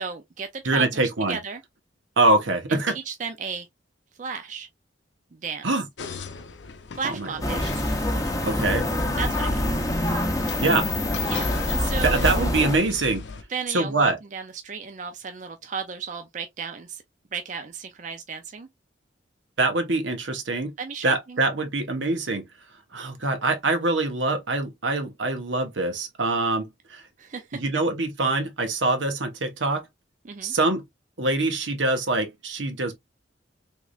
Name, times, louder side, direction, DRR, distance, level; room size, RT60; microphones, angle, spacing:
voice 1, 0.0-1.6 2.7-3.7 4.2-4.7 5.3-5.6 6.9-7.6 9.2-9.6 11.3-12.4 13.5-17.0 17.3-18.7 20.8-21.4 27.2-27.6 30.2-30.5, right 5 dB, 40° right, 0.4 m, -34 dB
voice 2, 0.6-1.4 2.2-2.9 5.6-5.9 7.0-7.3 7.6-7.7 8.5-8.9 10.6-10.9 12.0-13.2 13.7-14.2 19.6-20.7 21.0-22.5 22.9-26.7 26.9-27.0 27.5-29.8 30.4-30.8 31.2-33.0, right 2 dB, 85° right, 1.1 m, -24 dB
sound 1, 6.0-13.4, left 4 dB, 75° left, 0.6 m, -39 dB
sound 2, 7.4-12.8, left 1 dB, 20° left, 0.7 m, -25 dB
3.5 x 3.2 x 2.4 m
head